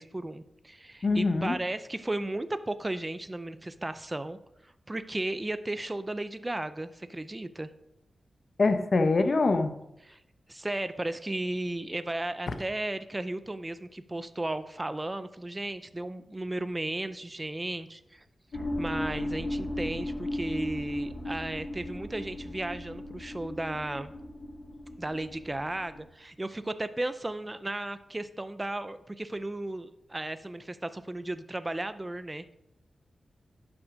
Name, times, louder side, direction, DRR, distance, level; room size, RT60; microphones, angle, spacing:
voice 1, 0.0-4.4 4.6-7.7 10.1-10.2 10.5-18.2 18.5-24.1 25.0-32.6, right 1 dB, 20° right, 12 dB, 0.5 m, -35 dB
voice 2, 1.0-1.6 8.6-9.8, left 3 dB, 50° left, 8 dB, 0.9 m, -24 dB
sound 1, 18.5-26.0, left 1 dB, 70° left, 2.2 m, -36 dB
11.0 x 6.2 x 5.0 m, 0.85 s
wide cardioid pair, 90°, 0 cm